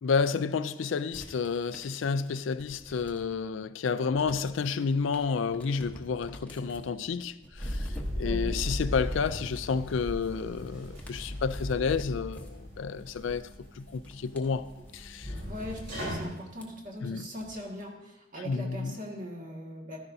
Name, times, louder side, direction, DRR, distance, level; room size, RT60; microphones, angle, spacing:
voice 1, 0.0-7.9 8.2-13.4 13.8-14.7 14.9-15.3 17.0-17.3 18.4-19.0, left 5 dB, 70° left, 0.4 m, -30 dB
sound 1, 1.1-3.5 3.9-17.8, left 1 dB, 5° left, 1.0 m, -49 dB
sound 2, 7.6-16.3, equal, 65° right, 3.6 m, -37 dB
voice 2, 8.2-8.6 15.5-18.0 18.3-20.0, equal, 40° right, 1.7 m, -40 dB
13.5 x 11.0 x 2.7 m
head